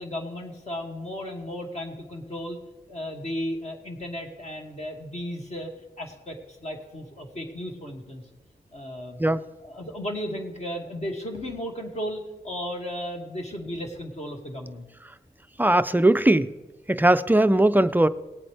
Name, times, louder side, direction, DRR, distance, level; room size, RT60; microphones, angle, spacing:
voice 1, 0.0-2.6 2.9-5.7 6.0-8.2 8.7-9.2 9.6-14.8, equal, 40° left, 1 dB, 2.2 m, -34 dB
voice 2, 15.6-16.5 16.9-18.1, right 1 dB, 10° right, 12 dB, 0.4 m, -19 dB
18.5 x 8.3 x 3.4 m, 1.1 s
wide cardioid pair, 90°, 17 cm